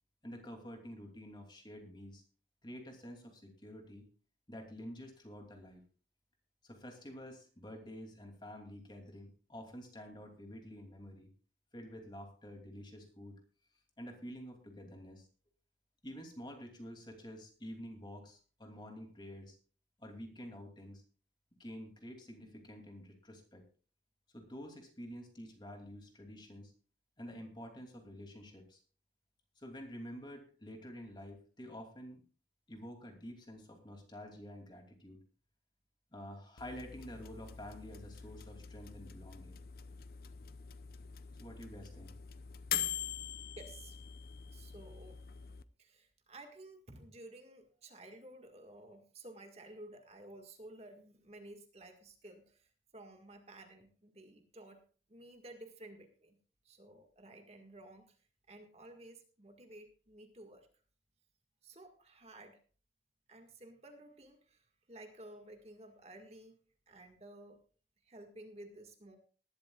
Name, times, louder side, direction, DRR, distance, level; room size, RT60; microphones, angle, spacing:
voice 1, 0.2-2.2 2.6-4.1 4.5-5.8 6.6-11.3 11.7-13.4 14.0-15.3 16.0-19.6 20.0-21.0 21.6-23.6 24.3-26.7 27.2-28.8 29.6-32.2 32.7-35.2 36.1-39.6 41.4-42.2, equal, 25° left, 3 dB, 2.7 m, -49 dB
sound 1, 36.6-45.6, left 9 dB, 55° left, 0.6 m, -44 dB
voice 2, 43.6-44.0 44.5-45.2 45.8-54.8 55.1-56.4 56.6-58.2 58.5-60.7 61.6-62.6 63.3-66.6 66.9-67.6 68.0-69.2, right 1 dB, 35° right, 4 dB, 1.8 m, -54 dB
19.5 x 12.0 x 2.4 m, 0.39 s
head